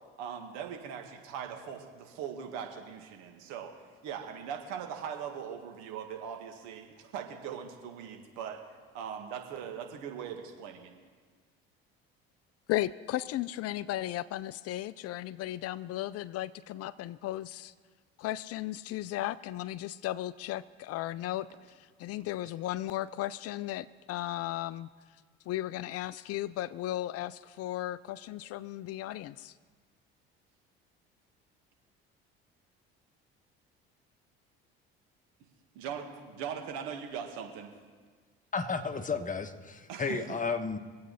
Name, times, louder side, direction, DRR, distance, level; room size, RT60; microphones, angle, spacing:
voice 1, 0.2-3.7 4.0-8.6 8.9-10.9 35.8-37.7 39.9-40.2, right 8 dB, 70° right, 4 dB, 1.9 m, -40 dB
voice 2, 12.7-17.7 18.2-21.5 22.0-24.9 25.5-29.5, left 14 dB, 55° left, 17 dB, 0.5 m, -35 dB
voice 3, 38.5-40.8, left 4 dB, 25° left, 7 dB, 1.4 m, -33 dB
24.0 x 8.6 x 4.2 m, 1.5 s
hypercardioid pair, 60°, 29 cm